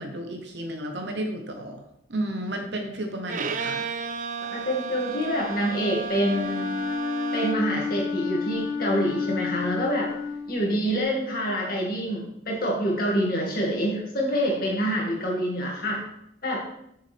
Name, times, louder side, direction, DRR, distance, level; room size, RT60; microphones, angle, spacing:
voice 1, 0.0-3.8, right 1 dB, 65° right, 4 dB, 1.0 m, -33 dB
Bowed string instrument, 3.3-7.8, right 6 dB, 40° right, 0.4 m, -33 dB
voice 2, 4.4-6.7 7.3-10.1 10.5-16.0 16.4-16.7, equal, 50° left, -2 dB, 2.2 m, -26 dB
Wind instrument woodwind instrument, 6.2-11.0, left 5 dB, 80° left, 1.3 m, -31 dB
7.2 x 6.5 x 3.5 m, 0.75 s
head